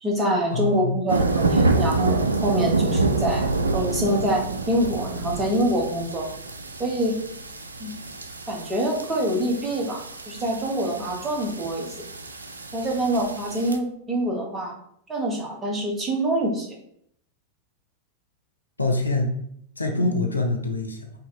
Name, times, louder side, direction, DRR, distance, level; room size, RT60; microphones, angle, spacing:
voice 1, 0.0-3.4 3.7-6.3 6.8-7.2 7.8-7.9 8.5-12.0 12.7-14.7 15.1-16.7 20.0-20.1, right 1 dB, 15° right, -1 dB, 1.2 m, -25 dB
voice 2, 0.5-0.9 18.8-19.4 19.8-21.1, left 2 dB, 80° left, 3 dB, 0.6 m, -25 dB
sound 1, 1.1-13.8, right 3 dB, 75° right, 0.4 m, -27 dB
5.3 x 2.9 x 3.4 m, 0.70 s
figure-of-eight pair, 90°, 0 cm